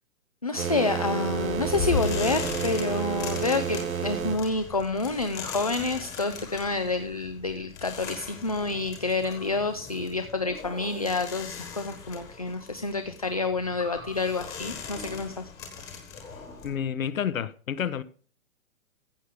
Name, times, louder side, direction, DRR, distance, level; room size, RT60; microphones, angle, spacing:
voice 1, 0.4-15.5 15.8-15.9, left 3 dB, 30° left, 0.4 m, -28 dB
sound 1, 0.6-4.4, right 7 dB, 90° right, 1.9 m, -30 dB
sound 2, 1.2-16.7, left 6 dB, 10° left, 1.4 m, -38 dB
voice 2, 16.6-18.0, left 8 dB, 85° left, 1.2 m, -29 dB
15.0 x 6.7 x 3.6 m
hypercardioid pair, 180°, 40 cm